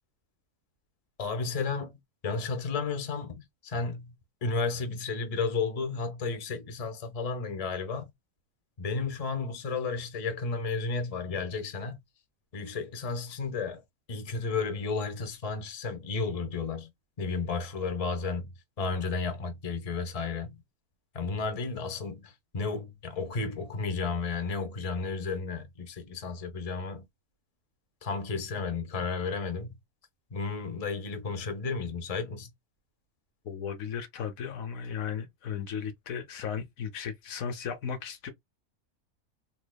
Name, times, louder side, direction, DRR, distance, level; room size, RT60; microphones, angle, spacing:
voice 1, 1.2-2.0 2.2-4.1 4.4-8.1 8.8-12.0 12.5-13.8 14.1-16.9 17.2-20.6 21.1-27.1 28.0-29.8 30.3-32.5, left 4 dB, 30° left, 0.8 m, -33 dB
voice 2, 33.4-38.3, left 7 dB, 75° left, 1.1 m, -35 dB
4.0 x 2.8 x 2.2 m
omnidirectional pair, 1.5 m